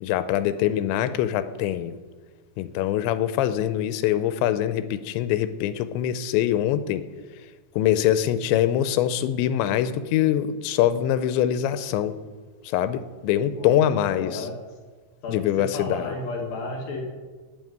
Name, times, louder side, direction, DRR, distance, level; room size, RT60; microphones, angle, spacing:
voice 1, 0.0-1.9 2.6-7.0 7.8-12.2 12.6-14.5 15.3-16.1, left 11 dB, 90° left, 12 dB, 3.0 m, -24 dB
voice 2, 14.2-14.5 15.2-17.0, left 3 dB, 60° left, -1 dB, 3.5 m, -32 dB
11.0 x 9.2 x 9.4 m, 1.4 s
omnidirectional pair, 5.1 m